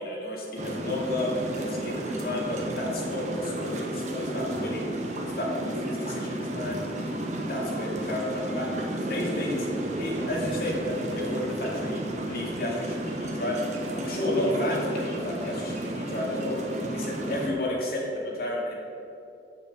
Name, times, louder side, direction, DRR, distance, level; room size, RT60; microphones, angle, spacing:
voice 1, 0.0-4.8 5.4-6.8 7.5-9.7 10.0-12.0 12.3-13.7 13.9-16.6 16.9-18.7, left 1 dB, 55° left, -3 dB, 2.4 m, -31 dB
sound 1, 0.6-17.5, right 1 dB, 40° right, 1.0 m, -32 dB
7.8 x 6.8 x 6.8 m, 2.7 s
head